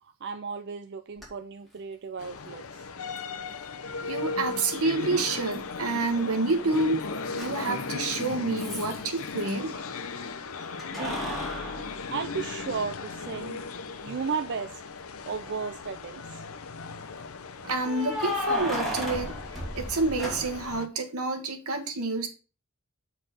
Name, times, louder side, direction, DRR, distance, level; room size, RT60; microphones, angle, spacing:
voice 1, 0.0-2.9 10.9-11.2 12.1-13.6 14.0-14.8 15.3-16.4, right 5 dB, 55° right, 0.5 m, -34 dB
Keys jangling, 1.2-1.3 3.2-3.3 5.5-6.1 6.3-9.5 10.8-12.9 13.4-13.5 15.3-15.8 17.8-20.8, equal, ahead, 2.6 m, -35 dB
sound 1, 2.2-20.9, left 4 dB, 70° left, 0.7 m, -37 dB
voice 2, 4.0-9.8 14.1-14.2 17.6-19.3 19.8-22.3, right 2 dB, 80° right, 1.5 m, -28 dB
7.9 x 4.2 x 5.1 m
head